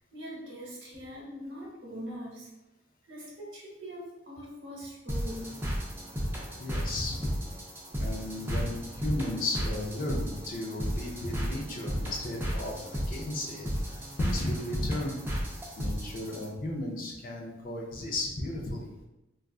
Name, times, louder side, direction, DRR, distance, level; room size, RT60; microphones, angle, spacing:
voice 1, 0.1-2.5 3.0-5.7, equal, 65° right, -4 dB, 1.0 m, -42 dB
sound 1, 5.1-16.5, equal, 10° right, 0.4 m, -34 dB
voice 2, 6.6-7.4 8.0-15.2 15.8-18.9, left 1 dB, 45° left, -1 dB, 0.5 m, -34 dB
3.4 x 2.4 x 2.3 m, 0.99 s
head